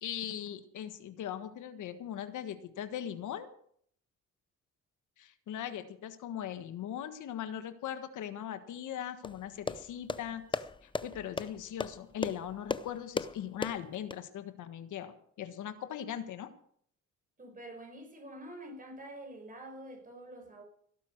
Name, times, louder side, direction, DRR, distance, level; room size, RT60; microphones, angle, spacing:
voice 1, 0.0-3.5 5.2-10.4 10.8-16.5, left 10 dB, 80° left, 1.5 m, -40 dB
sound 1, 9.2-14.2, left 3 dB, 15° left, 0.6 m, -38 dB
voice 2, 17.4-20.6, right 1 dB, 30° right, 5.0 m, -47 dB
17.0 x 8.5 x 6.6 m
cardioid pair, 90°, 30 cm